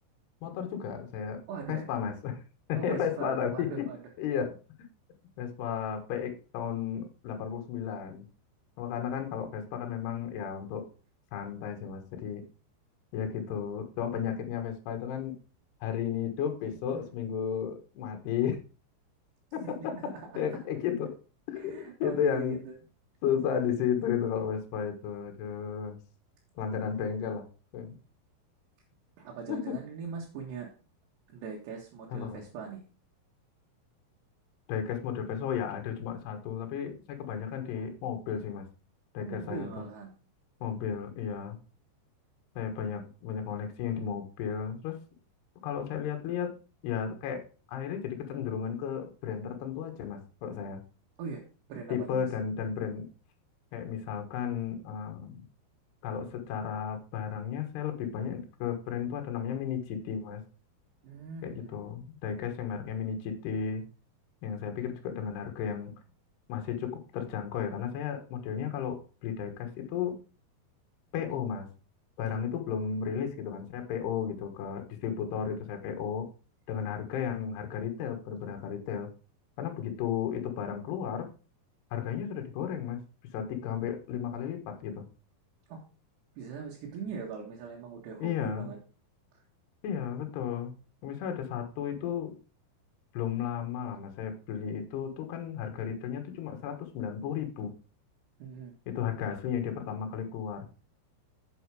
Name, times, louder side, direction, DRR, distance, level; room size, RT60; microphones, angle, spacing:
voice 1, 0.4-1.4 1.7-2.4 2.7-3.9 4.2-4.5 5.4-8.3 8.8-10.9 11.3-12.4 13.1-15.4 15.8-18.6 19.5-20.0 20.4-21.2 21.5-22.6 23.2-26.0 26.6-27.5 27.7-28.0 29.5-29.8 32.1-32.4 34.7-38.7 39.2-39.7 40.6-41.6 42.6-45.0 45.6-46.5 46.8-47.4 47.7-50.8 51.9-53.1 53.7-55.4 56.0-60.4 61.4-63.8 64.4-65.9 66.5-70.2 71.1-71.7 72.2-76.3 76.7-79.1 79.6-81.3 81.9-83.0 83.3-85.1 88.2-88.7 89.8-90.7 91.0-92.3 93.1-97.7 98.9-100.7, left 8 dB, 70° left, 4 dB, 3.3 m, -33 dB
voice 2, 1.5-1.9 2.8-4.0 9.1-9.2 16.9-17.1 19.6-20.4 21.6-22.8 29.2-30.7 31.3-32.8 37.8-37.9 39.2-40.1 51.2-51.4 51.7-52.3 61.0-61.8 85.7-85.8 86.4-88.8 89.3-89.4 98.4-98.7, right 6 dB, 70° right, -1 dB, 3.6 m, -41 dB
9.0 x 7.4 x 4.8 m, 0.34 s
omnidirectional pair, 5.2 m